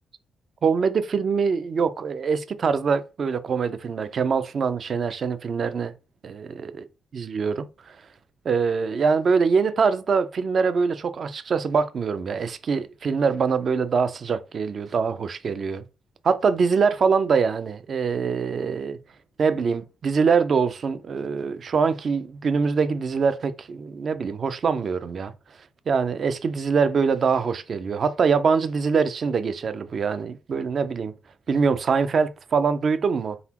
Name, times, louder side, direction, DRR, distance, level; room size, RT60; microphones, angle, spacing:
voice 1, 0.6-5.9 6.2-6.7 7.1-7.7 8.5-15.8 16.2-19.0 19.4-25.3 25.9-31.1 31.5-33.4, right 5 dB, 50° right, 0.4 m, -23 dB
4.0 x 3.6 x 2.9 m
cardioid pair, 100°, 0 cm